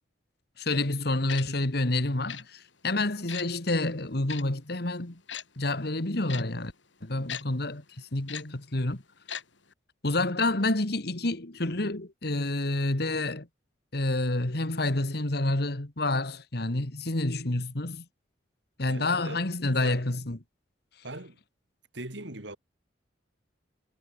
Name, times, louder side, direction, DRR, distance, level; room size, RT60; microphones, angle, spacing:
voice 1, 0.6-5.2 5.6-6.7 7.0-9.0 10.0-13.5 13.9-18.0 18.8-20.4, left 2 dB, 60° left, 2.0 m, -28 dB
Tick-tock, 1.3-1.4 2.3-2.4 3.3-3.5 4.3-4.4 5.3-5.4 6.3-6.4 7.3-7.4 8.3-8.4 9.3-9.4 9.7-9.8, left 9 dB, 85° left, 4.1 m, -37 dB
voice 2, 18.9-20.0 21.0-21.4 21.9-22.6, right 2 dB, 75° right, 4.3 m, -41 dB
head